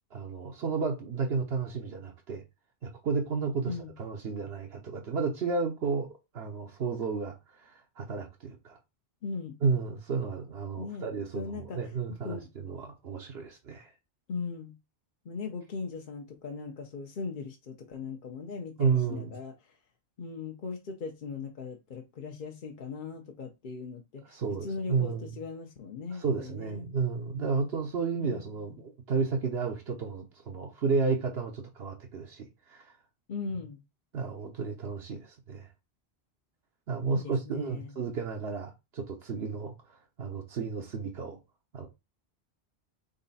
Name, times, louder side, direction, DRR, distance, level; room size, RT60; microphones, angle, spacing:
voice 1, 0.1-2.4 2.8-3.7 4.0-6.1 6.3-8.8 9.6-13.9 18.8-19.4 24.3-25.3 26.2-32.9 34.1-35.7 36.9-41.4 41.7-41.9, right 5 dB, 70° right, 1.1 m, -32 dB
voice 2, 9.2-9.6 10.8-11.1 11.3-11.8 12.1-12.5 14.3-14.7 15.2-19.7 20.2-24.4 24.6-26.9 28.2-28.8 33.3-33.8 37.1-37.9, left 4 dB, 55° left, 0.8 m, -39 dB
3.9 x 3.2 x 4.0 m
omnidirectional pair, 1.1 m